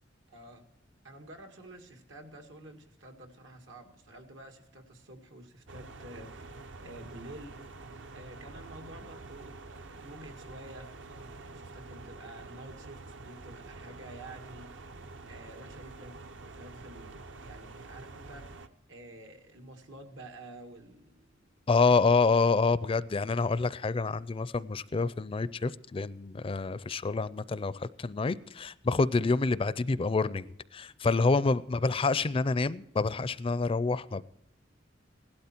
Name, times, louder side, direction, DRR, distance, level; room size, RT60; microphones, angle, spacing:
voice 1, 0.3-0.7 1.0-7.6 8.1-14.7 15.2-21.3 21.8-22.0 31.2-31.5, right 1 dB, 85° right, 2.0 m, -50 dB
sound 1, 5.7-18.7, right 3 dB, 70° right, 0.8 m, -47 dB
voice 2, 21.7-30.5 30.7-34.2, left 4 dB, 30° left, 0.4 m, -27 dB
17.0 x 12.0 x 4.4 m
head